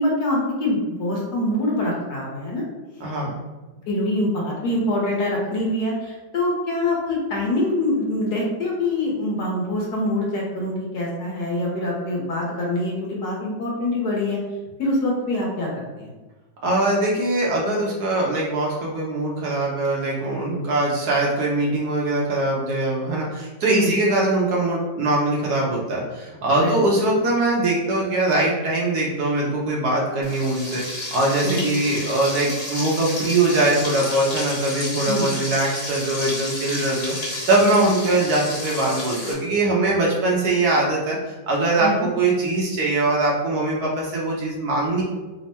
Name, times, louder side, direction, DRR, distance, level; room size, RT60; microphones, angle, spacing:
voice 1, 0.0-2.6 3.9-14.4 14.8-15.7 16.0-16.1 23.7-23.9 26.5-26.8 31.4-31.7 35.1-35.3 37.7-37.9 41.8-42.1, left 1 dB, 65° left, -3 dB, 1.3 m, -24 dB
voice 2, 3.0-3.4 16.6-30.8 31.1-45.0, right 2 dB, 65° right, -3 dB, 1.2 m, -22 dB
Frying (food), 30.2-39.3, left 1 dB, 45° left, 1.3 m, -31 dB
3.5 x 2.1 x 4.2 m, 1.2 s
omnidirectional pair, 2.0 m